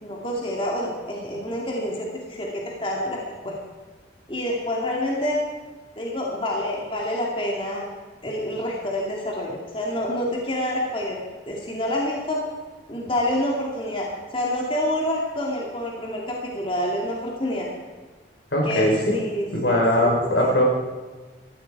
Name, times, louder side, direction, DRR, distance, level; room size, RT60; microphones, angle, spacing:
voice 1, 0.0-3.6 4.3-5.4 6.0-7.9 8.2-11.2 11.5-12.4 12.9-14.1 14.3-17.7 18.6-20.5, left 1 dB, 30° left, -2 dB, 2.3 m, -27 dB
voice 2, 18.5-19.2 19.5-20.6, left 1 dB, 75° left, -1 dB, 4.2 m, -20 dB
17.5 x 13.5 x 4.8 m, 1.4 s
head